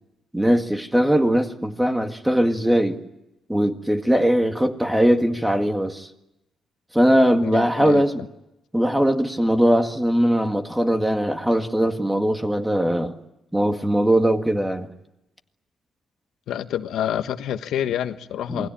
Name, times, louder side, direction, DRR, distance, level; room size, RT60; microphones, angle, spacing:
voice 1, 0.3-3.0 3.5-6.1 6.9-8.1 8.7-13.1 13.5-14.9 18.5-18.7, equal, 5° right, 1.9 m, -20 dB
voice 2, 7.4-8.0 16.5-18.7, left 10 dB, 80° left, 1.4 m, -27 dB
28.0 x 21.5 x 9.0 m
cardioid pair, 140°, 0 cm